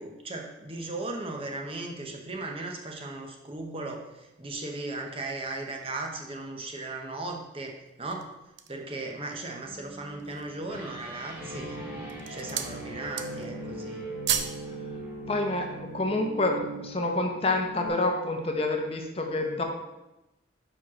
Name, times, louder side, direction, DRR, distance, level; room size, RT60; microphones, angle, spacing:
voice 1, 0.0-8.3 8.7-11.8 12.3-14.0, right 2 dB, 30° right, 1 dB, 0.9 m, -37 dB
sound 1, 7.9-8.9 9.5-9.6 10.0-10.6 11.3-11.7 12.0-12.8 13.0-13.6 13.9-14.6 14.9-15.1, right 8 dB, 65° right, 0.6 m, -33 dB
sound 2, 9.6-17.9, right 2 dB, 10° right, 2.3 m, -40 dB
voice 2, 15.3-19.6, left 2 dB, 30° left, 3 dB, 0.8 m, -28 dB
5.6 x 5.1 x 6.0 m, 0.97 s
head